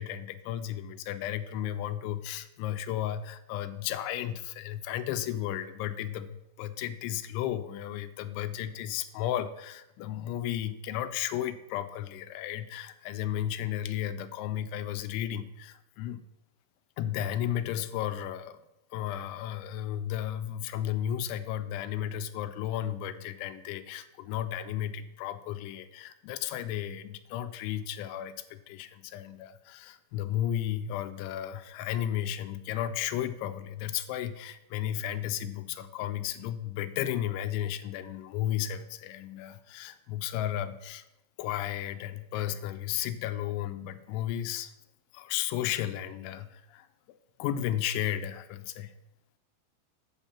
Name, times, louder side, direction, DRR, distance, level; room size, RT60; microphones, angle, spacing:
voice 1, 0.0-16.2 17.0-18.6 18.9-41.0 41.4-44.7 45.1-46.9 47.4-48.9, left 11 dB, 85° left, 11 dB, 3.0 m, -34 dB
8.9 x 5.8 x 7.0 m, 0.90 s
omnidirectional pair, 5.4 m